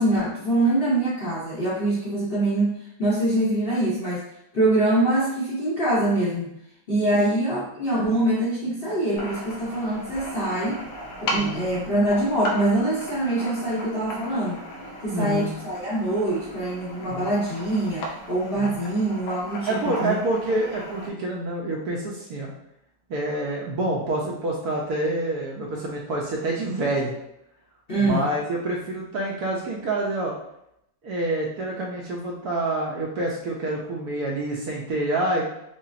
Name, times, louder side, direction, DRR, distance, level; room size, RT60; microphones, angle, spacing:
voice 1, 0.0-4.3 4.5-6.5 6.9-10.8 11.2-14.6 15.0-20.2 27.9-28.3, right 1 dB, 45° left, -8 dB, 0.7 m, -24 dB
sound 1, 9.2-21.1, equal, 75° left, 1.3 m, -36 dB
voice 2, 11.3-11.7 15.1-15.5 16.9-17.3 18.5-18.7 19.7-22.5 23.1-27.1 28.0-30.3 31.0-35.5, right 2 dB, 65° right, -2 dB, 1.0 m, -27 dB
5.5 x 2.0 x 2.5 m, 0.77 s
omnidirectional pair, 2.0 m